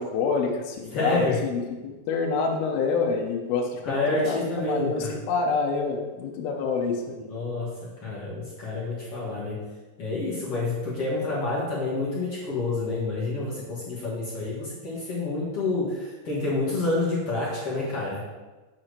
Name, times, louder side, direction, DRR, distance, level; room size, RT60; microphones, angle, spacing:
voice 1, 0.0-4.4 4.7-7.2, left 4 dB, 85° left, 0 dB, 2.8 m, -27 dB
voice 2, 0.9-1.4 3.8-5.1 7.2-9.7 10.0-18.2, left 2 dB, 45° left, -7 dB, 2.5 m, -28 dB
8.1 x 4.3 x 6.7 m, 1.2 s
omnidirectional pair, 4.2 m